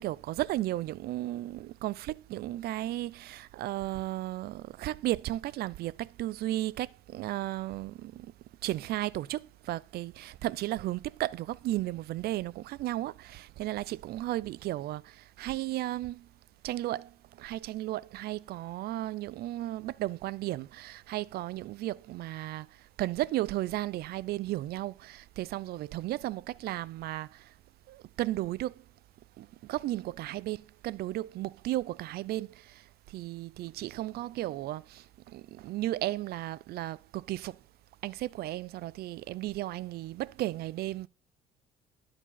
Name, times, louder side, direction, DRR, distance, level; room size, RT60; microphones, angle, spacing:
voice 1, 0.0-8.3 8.6-16.3 16.6-17.1 17.4-22.7 23.0-27.4 27.9-28.7 29.4-32.7 33.1-37.6 38.0-41.1, right 15 dB, 70° right, 0.5 m, -34 dB
12.0 x 4.9 x 5.6 m
cardioid pair, 110°, 17 cm